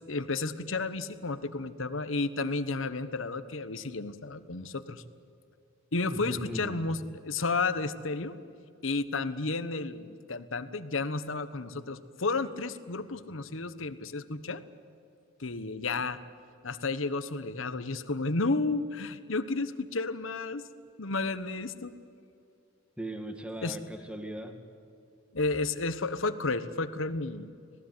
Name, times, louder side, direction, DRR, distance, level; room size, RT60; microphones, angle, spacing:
voice 1, 0.1-5.0 5.9-8.3 8.8-14.6 15.4-16.2 16.6-20.6 21.0-21.9 23.6-23.8 25.3-27.5, left 3 dB, 70° left, 12 dB, 1.2 m, -32 dB
voice 2, 6.1-6.9 23.0-24.6, right 1 dB, 5° right, 6 dB, 2.1 m, -38 dB
26.0 x 18.5 x 9.6 m, 2.5 s
head